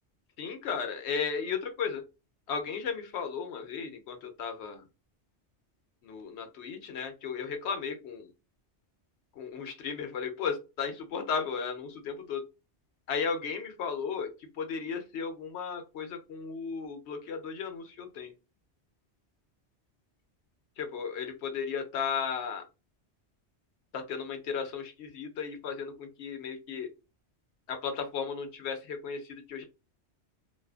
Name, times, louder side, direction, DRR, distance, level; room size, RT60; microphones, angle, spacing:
voice 1, 0.4-2.0 2.5-4.8 6.0-8.3 9.3-12.4 13.1-18.3 20.8-22.6 23.9-26.9 27.7-29.6, left 6 dB, 75° left, 6 dB, 0.9 m, -35 dB
2.5 x 2.3 x 2.4 m, 0.28 s
omnidirectional pair, 1.2 m